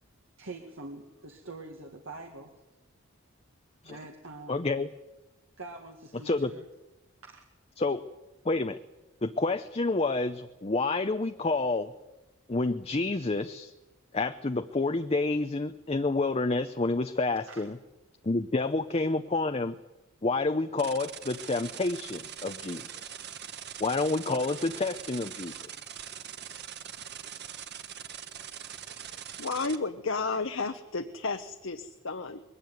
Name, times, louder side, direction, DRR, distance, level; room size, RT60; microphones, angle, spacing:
voice 1, 0.4-2.5 3.8-4.6 5.6-6.6 7.2-7.4 17.5-17.7, right 2 dB, 75° right, 2 dB, 2.0 m, -44 dB
voice 2, 4.5-4.9 6.2-6.5 7.8-8.0 8.4-8.8 9.2-11.9 12.5-13.7 14.1-17.8 18.2-19.8 20.2-23.1 23.8-25.7, left 3 dB, 30° left, 8 dB, 0.6 m, -29 dB
sound 1, 20.8-29.8, right 9 dB, 55° right, 1.4 m, -42 dB
voice 3, 29.0-32.4, left 3 dB, 65° left, 7 dB, 1.1 m, -33 dB
21.5 x 16.5 x 9.2 m, 1.0 s
head